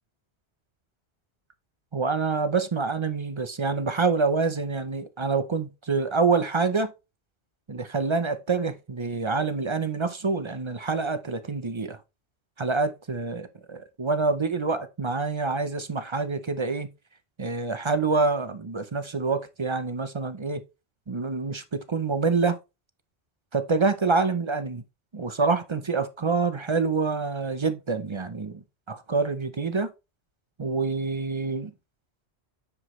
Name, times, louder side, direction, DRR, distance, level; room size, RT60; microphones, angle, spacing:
voice 1, 1.9-6.9 7.7-12.0 12.6-16.9 17.4-20.6 21.1-22.6 23.5-24.8 25.1-28.6 28.9-29.9 30.6-31.7, right 4 dB, 35° right, 0.6 m, -26 dB
9.7 x 5.0 x 3.1 m
omnidirectional pair, 1.1 m